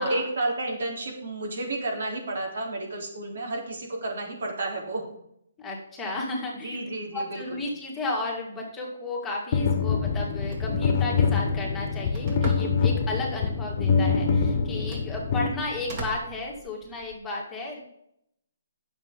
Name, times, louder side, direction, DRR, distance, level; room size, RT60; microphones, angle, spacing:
voice 1, 0.0-5.0 6.6-7.6, right 2 dB, 65° right, -1 dB, 3.6 m, -31 dB
voice 2, 5.6-6.8 7.1-17.8, left 2 dB, 10° left, -3 dB, 2.3 m, -33 dB
sound 1, 9.5-16.1, left 5 dB, 40° left, 1.4 m, -25 dB
Telephone, 10.2-17.2, right 2 dB, 35° right, 2.8 m, -43 dB
9.1 x 7.1 x 5.3 m, 0.74 s
hypercardioid pair, 150°, 0 cm